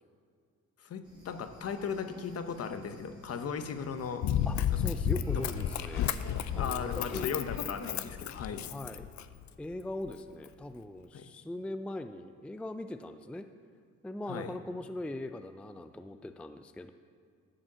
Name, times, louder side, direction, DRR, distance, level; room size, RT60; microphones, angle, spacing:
voice 1, 0.8-4.3 5.1-5.2 6.6-8.7 11.1-11.3 14.3-14.5, left 6 dB, 50° left, 9 dB, 0.8 m, -37 dB
sound 1, 1.0-8.0, right 1 dB, 15° right, 2.3 m, -55 dB
Run, 4.2-9.5 10.1-10.2, left 9 dB, 70° left, 0.5 m, -32 dB
voice 2, 4.5-6.1 6.5-7.3 8.7-9.1 9.6-13.5 14.0-16.9, left 1 dB, 5° left, 9 dB, 0.3 m, -40 dB
11.0 x 5.0 x 7.5 m, 2.2 s
cardioid pair, 90°, 30 cm